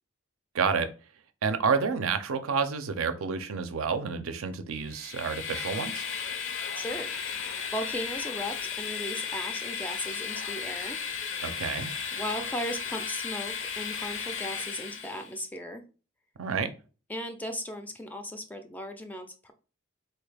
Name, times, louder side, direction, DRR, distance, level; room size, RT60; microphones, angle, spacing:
voice 1, 0.5-0.9 1.4-6.1 11.4-11.9 16.4-16.7, right 5 dB, 75° right, 9 dB, 0.5 m, -29 dB
Train, 4.8-15.3, left 6 dB, 60° left, 0.5 m, -35 dB
voice 2, 6.8-11.0 12.1-15.8 17.1-19.5, equal, 10° left, 6 dB, 0.3 m, -37 dB
4.0 x 2.3 x 3.3 m, 0.35 s
head